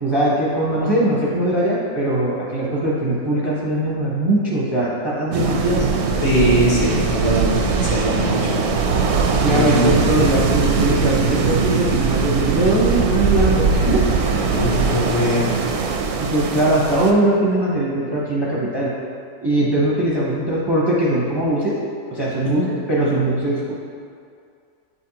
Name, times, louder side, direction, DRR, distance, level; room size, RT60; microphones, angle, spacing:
voice 1, 0.0-5.9 9.4-14.3 16.2-18.9 19.4-21.7 22.1-22.6 22.9-23.7, right 1 dB, 25° right, -6 dB, 0.5 m, -20 dB
sound 1, 5.3-17.1, right 5 dB, 65° right, 0.7 m, -20 dB
voice 2, 6.2-8.6 9.5-10.1 14.6-15.6 22.4-22.7, equal, 60° left, -6 dB, 1.4 m, -21 dB
8.1 x 4.1 x 2.8 m, 2.3 s
omnidirectional pair, 1.5 m